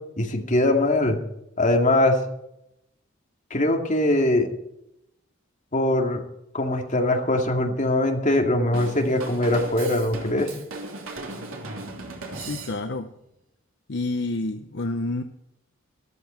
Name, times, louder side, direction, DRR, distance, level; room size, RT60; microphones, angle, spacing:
voice 1, 0.2-1.2 1.6-2.2 3.5-4.5 5.7-6.2 6.5-10.5, left 1 dB, 40° left, 2 dB, 2.2 m, -22 dB
Drum kit / Drum, 8.7-13.1, right 2 dB, 85° right, 3.2 m, -37 dB
voice 2, 12.4-13.1 13.9-15.2, left 2 dB, 60° left, 7 dB, 0.8 m, -28 dB
14.0 x 13.5 x 4.4 m, 0.82 s
head